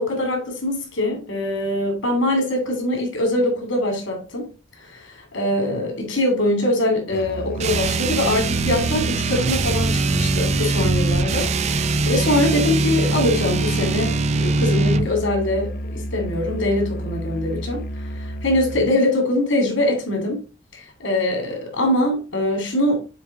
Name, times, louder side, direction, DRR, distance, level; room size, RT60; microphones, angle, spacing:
voice 1, 0.0-4.5 4.9-17.8 18.2-20.4 20.7-23.0, left 1 dB, 75° left, 2.6 m, -23 dB
Musical instrument, 7.1-19.0, equal, 50° left, 0.5 m, -31 dB
sound 1, 7.6-15.1, right 3 dB, 35° right, 0.3 m, -22 dB
7.2 x 3.6 x 3.7 m
head